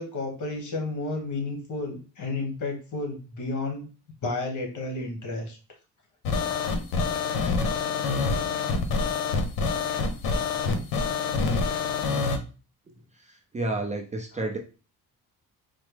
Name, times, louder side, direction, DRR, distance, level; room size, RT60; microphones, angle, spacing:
voice 1, 0.0-3.9 4.2-5.6 14.3-14.5, left 2 dB, 55° left, 2 dB, 1.4 m, -32 dB
sound 1, 6.2-12.4, left 4 dB, 85° left, 0.7 m, -26 dB
voice 2, 13.2-14.6, right 2 dB, 20° right, 2 dB, 0.5 m, -31 dB
4.2 x 2.0 x 3.3 m, 0.35 s
cardioid pair, 110°, 36 cm